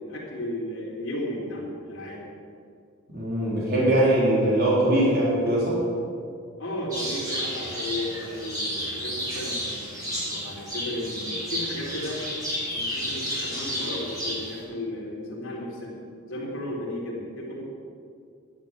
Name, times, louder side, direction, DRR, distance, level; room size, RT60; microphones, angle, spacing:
voice 1, 0.0-2.2 6.6-9.9 10.2-12.2 12.7-16.0 16.3-17.6, left 1 dB, 65° left, -4 dB, 3.7 m, -34 dB
voice 2, 3.1-5.8, right 1 dB, 45° right, -6 dB, 3.4 m, -21 dB
sound 1, 6.9-14.6, equal, 15° right, 3.7 m, -32 dB
11.0 x 9.8 x 7.3 m, 2.3 s
head